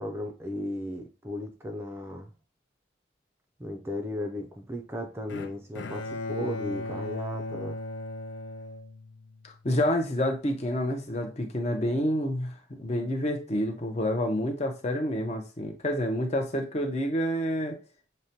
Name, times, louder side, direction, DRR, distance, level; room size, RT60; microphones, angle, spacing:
voice 1, 0.0-2.3 3.6-7.8, left 1 dB, 15° right, 3 dB, 0.4 m, -35 dB
Bowed string instrument, 5.3-9.5, left 2 dB, 80° left, 0.4 m, -37 dB
voice 2, 9.4-17.8, equal, 35° left, 4 dB, 0.6 m, -28 dB
6.4 x 2.1 x 2.8 m, 0.34 s
head